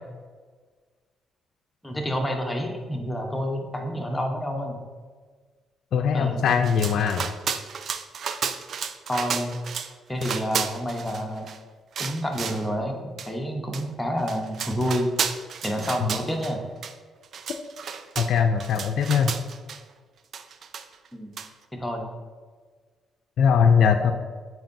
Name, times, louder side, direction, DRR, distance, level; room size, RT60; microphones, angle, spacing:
voice 1, 1.8-4.8 6.1-6.5 9.1-9.5 10.1-11.5 12.0-15.1 15.6-16.6 21.1-21.3 21.7-22.1, equal, 10° left, 2 dB, 0.9 m, -29 dB
voice 2, 5.9-7.3 18.2-19.3 23.4-24.1, left 6 dB, 70° left, 4 dB, 0.4 m, -20 dB
sound 1, 6.5-9.9 10.2-11.6 12.0-12.7 13.2-13.3 13.7-13.8 14.2-16.5 16.8-16.9 17.2-19.8 20.3-21.1 21.4-21.5, right 6 dB, 60° right, 0.4 m, -32 dB
9.2 x 4.6 x 2.6 m, 1.5 s
cardioid pair, 90°, 0 cm